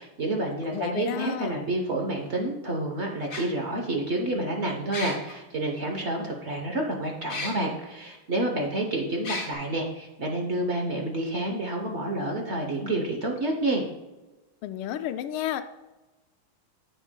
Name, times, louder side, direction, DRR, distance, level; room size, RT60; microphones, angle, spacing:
voice 1, 0.0-13.8, right 1 dB, 50° right, 2 dB, 0.8 m, -29 dB
voice 2, 0.6-1.6 14.6-15.6, left 11 dB, 90° left, 9 dB, 1.4 m, -31 dB
sound 1, 0.7-0.8 2.3-2.4 3.3-3.4 4.9-5.3 7.3-7.5 8.1-8.2 9.2-9.5, left 3 dB, 45° left, 1.6 m, -33 dB
9.8 x 7.9 x 2.2 m, 1.1 s
omnidirectional pair, 2.2 m